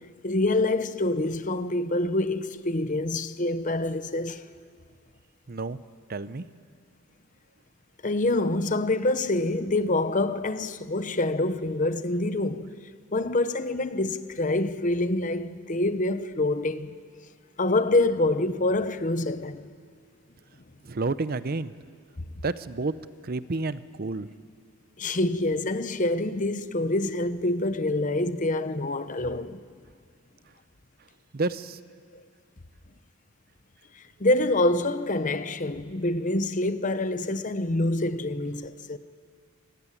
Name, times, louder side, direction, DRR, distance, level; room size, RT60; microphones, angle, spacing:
voice 1, 0.2-4.4 8.0-12.7 13.1-16.9 17.6-19.6 25.0-29.6 32.1-32.2 34.0-39.0, left 2 dB, 35° left, 0.8 m, -26 dB
voice 2, 5.5-5.8 6.1-6.4 20.8-21.7 22.4-22.9 23.2-24.3 31.3-31.8, right 3 dB, 45° right, 0.6 m, -30 dB
26.0 x 16.0 x 9.9 m
head